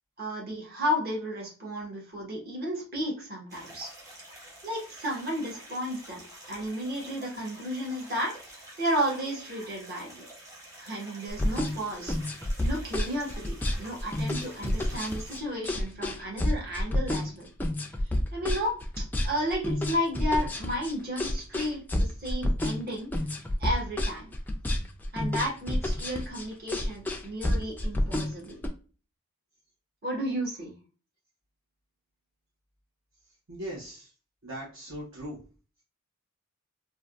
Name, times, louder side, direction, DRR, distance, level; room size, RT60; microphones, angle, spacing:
voice 1, 0.2-3.9 4.6-6.2 6.5-10.2 10.8-12.2 12.6-17.5 18.1-23.1 23.6-24.3 25.1-28.6 30.0-30.7, equal, 45° right, -3 dB, 1.2 m, -33 dB
sound 1, 3.5-15.4, right 1 dB, 15° right, 0.8 m, -48 dB
sound 2, 11.3-28.7, left 1 dB, 10° left, 0.3 m, -29 dB
voice 2, 33.5-34.1 34.4-35.4, right 1 dB, 65° right, -5 dB, 0.9 m, -39 dB
3.4 x 2.2 x 2.4 m, 0.36 s
head